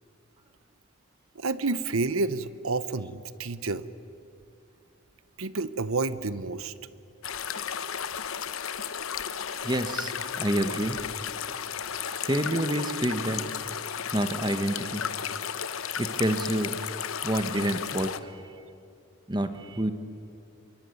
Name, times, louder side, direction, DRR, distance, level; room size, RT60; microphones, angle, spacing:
voice 1, 1.3-3.8 5.4-6.7, right 3 dB, 85° right, 15 dB, 0.9 m, -29 dB
sound 1, 7.2-18.2, left 8 dB, 85° left, 1.0 m, -34 dB
voice 2, 9.6-11.0 12.2-13.4 14.1-15.0 16.0-16.7 17.2-18.5 19.3-19.9, right 1 dB, 20° right, 9 dB, 1.1 m, -28 dB
25.5 x 23.0 x 9.6 m, 2.5 s
head